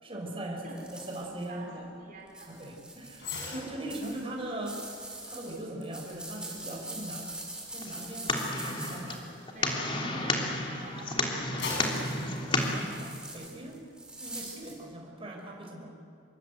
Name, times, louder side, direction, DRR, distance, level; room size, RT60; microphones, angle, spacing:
voice 1, 0.0-1.9 2.5-4.8 5.2-7.3 7.7-9.3 9.6-9.7 12.5-13.8 14.2-15.9, right 1 dB, 30° right, 0 dB, 5.1 m, -40 dB
voice 2, 0.6-1.1 1.5-2.6 9.4-12.8, right 2 dB, 50° right, -1 dB, 4.5 m, -48 dB
sound 1, 0.8-1.5 2.3-3.5 3.9-9.9 11.7-14.8, right 2 dB, 5° right, 5.2 m, -43 dB
sound 2, 3.2-10.6 11.0-13.4 13.8-14.0, left 3 dB, 65° left, 6.9 m, -44 dB
sound 3, 7.8-12.8, left 2 dB, 30° left, 3.2 m, -32 dB
26.5 x 23.5 x 8.1 m, 2.3 s
head